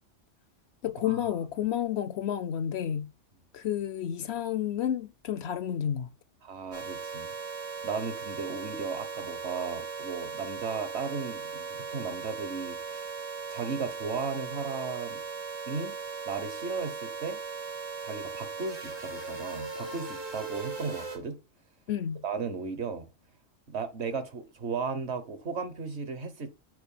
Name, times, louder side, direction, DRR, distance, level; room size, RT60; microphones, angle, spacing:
voice 1, 0.8-3.1 3.5-6.1 21.9-22.2, left 10 dB, 65° left, 0.8 m, -31 dB
voice 2, 6.4-7.3 7.8-13.1 13.5-15.2 15.7-15.9 16.3-17.4 18.0-21.4 22.2-23.1 23.7-26.5, right 5 dB, 60° right, 1.3 m, -35 dB
sound 1, 6.7-21.2, right 4 dB, 85° right, 2.5 m, -38 dB
7.9 x 4.5 x 5.5 m
omnidirectional pair, 1.3 m